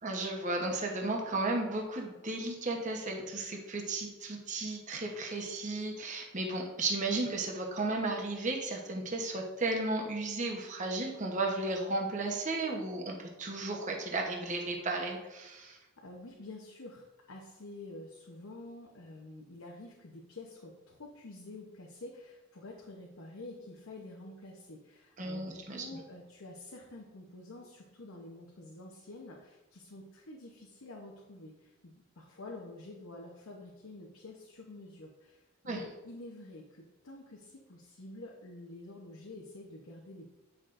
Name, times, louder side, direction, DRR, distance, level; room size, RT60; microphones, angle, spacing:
voice 1, 0.0-15.8 25.2-25.8 35.6-35.8, right 2 dB, 35° right, 1 dB, 1.0 m, -34 dB
voice 2, 15.5-40.3, left 2 dB, 85° left, -1 dB, 0.9 m, -48 dB
9.0 x 5.8 x 2.5 m, 1.1 s
head